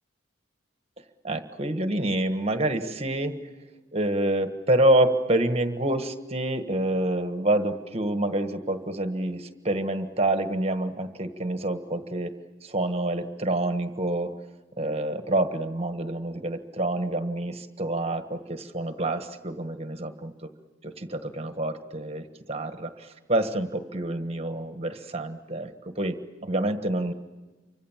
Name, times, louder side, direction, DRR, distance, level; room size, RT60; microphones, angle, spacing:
voice 1, 1.2-3.4 3.9-12.3 12.6-14.3 14.8-20.5 20.8-27.1, right 1 dB, 30° right, 8 dB, 1.4 m, -27 dB
29.0 x 25.5 x 7.4 m, 1.2 s
head